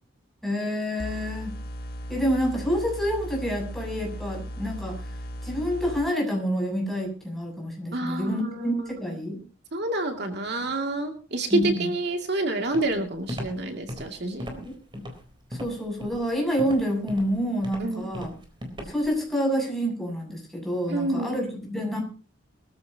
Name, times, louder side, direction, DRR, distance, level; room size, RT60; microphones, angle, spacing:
voice 1, 0.4-1.6 2.1-5.0 5.4-9.4 11.5-11.9 14.6-15.0 15.5-18.3 18.9-22.0, equal, ahead, 0 dB, 7.1 m, -28 dB
sound 1, 1.0-6.0, equal, 50° left, 1.8 m, -36 dB
voice 2, 7.9-8.9 9.7-14.6 17.8-18.1 20.9-21.4, right 2 dB, 55° right, 4 dB, 2.4 m, -28 dB
Walk footsteps, 12.7-19.2, equal, 25° right, 3.8 m, -38 dB
22.5 x 14.5 x 2.9 m, 0.36 s
head